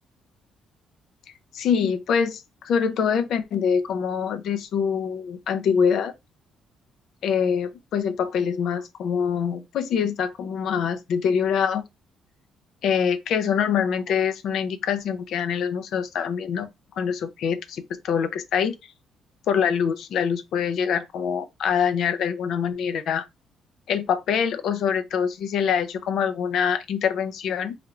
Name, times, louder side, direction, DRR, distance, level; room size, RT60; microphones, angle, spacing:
voice 1, 1.5-6.1 7.2-11.8 12.8-16.7 17.0-18.7 19.5-23.3 23.9-27.7, left 7 dB, 70° left, 0.5 m, -24 dB
3.3 x 2.8 x 2.4 m
cardioid pair, 115°, 0 cm